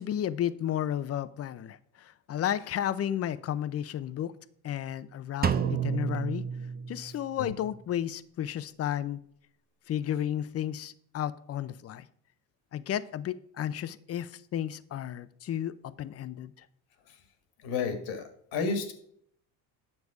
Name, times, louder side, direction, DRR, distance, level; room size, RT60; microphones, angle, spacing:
voice 1, 0.0-4.3 4.6-6.4 6.9-9.2 9.9-12.1 12.7-16.7, left 10 dB, 40° left, 16 dB, 0.6 m, -33 dB
Drum, 5.4-7.4, right 7 dB, 25° right, 0.7 m, -30 dB
voice 2, 17.6-18.2 18.5-18.9, left 4 dB, 75° left, 8 dB, 1.8 m, -30 dB
9.6 x 6.6 x 4.8 m, 0.66 s
supercardioid pair, 95°, 38 cm